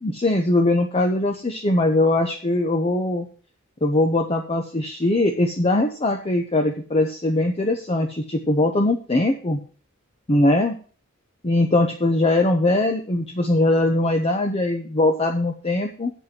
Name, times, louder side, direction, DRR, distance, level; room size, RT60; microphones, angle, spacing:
voice 1, 0.0-3.3 3.8-9.6 10.3-10.7 11.4-16.1, left 2 dB, 30° left, 4 dB, 0.8 m, -21 dB
7.5 x 5.4 x 7.5 m, 0.40 s
head